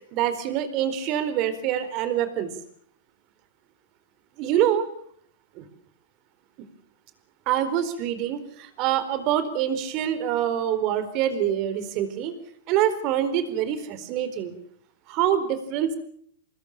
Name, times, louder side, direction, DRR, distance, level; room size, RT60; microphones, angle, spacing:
voice 1, 0.1-2.5 4.4-4.9 5.6-5.7 7.5-12.3 12.7-14.5 15.1-15.9, right 10 dB, 45° right, 12 dB, 4.3 m, -25 dB
26.0 x 20.5 x 7.5 m, 0.64 s
hypercardioid pair, 135°, 0 cm